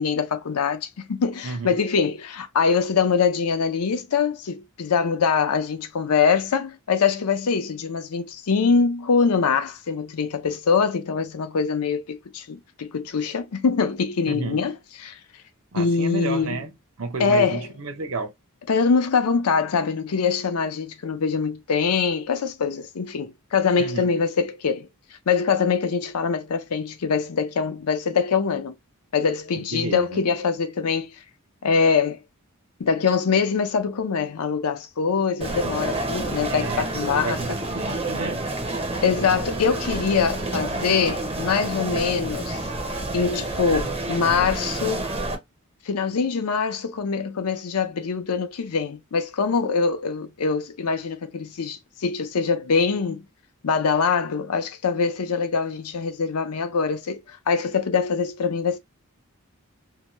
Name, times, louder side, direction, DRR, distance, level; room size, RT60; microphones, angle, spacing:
voice 1, 0.0-15.2 15.8-16.6 17.2-17.7 18.7-24.9 25.3-28.7 29.1-31.2 31.6-32.2 32.8-37.4 39.0-42.7 43.1-45.1 45.9-53.2 53.6-58.8, left 5 dB, 85° left, 0.6 m, -23 dB
voice 2, 1.4-1.8 14.3-14.6 15.7-16.7 17.0-18.3 23.8-24.1 29.6-30.2 36.5-38.4 38.9-39.0, right 3 dB, 65° right, 0.6 m, -31 dB
sound 1, 35.4-45.4, right 2 dB, 25° right, 0.6 m, -29 dB
2.7 x 2.2 x 2.9 m
head